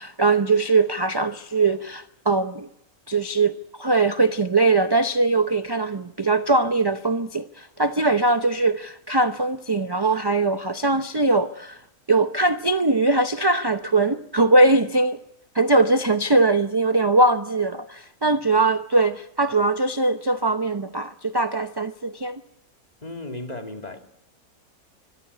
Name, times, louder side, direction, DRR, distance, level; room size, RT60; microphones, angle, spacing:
voice 1, 0.0-2.7 3.1-11.8 12.1-15.2 15.5-22.4, right 2 dB, 25° right, 0.6 m, -21 dB
voice 2, 23.0-24.0, left 2 dB, 25° left, 2.4 m, -35 dB
24.5 x 14.5 x 9.7 m
omnidirectional pair, 1.5 m